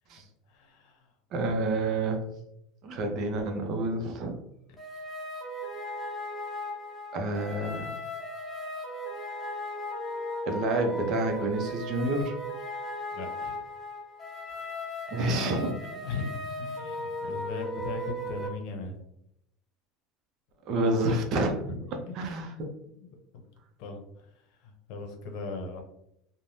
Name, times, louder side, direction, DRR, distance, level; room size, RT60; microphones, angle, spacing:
voice 1, 0.5-1.1 13.1-13.6 15.1-19.0 21.7-22.2 23.0-23.1 23.3-23.4 23.8-25.8, left 4 dB, 65° left, 4 dB, 0.7 m, -39 dB
voice 2, 1.3-2.3 2.8-4.4 7.1-7.9 10.4-12.3 15.1-15.7 20.7-21.6 22.2-22.7, right 2 dB, 50° right, 4 dB, 0.6 m, -28 dB
sound 1, 4.8-18.5, left 1 dB, 10° left, 0.8 m, -37 dB
3.2 x 2.1 x 2.6 m, 0.79 s
supercardioid pair, 115°, 0 cm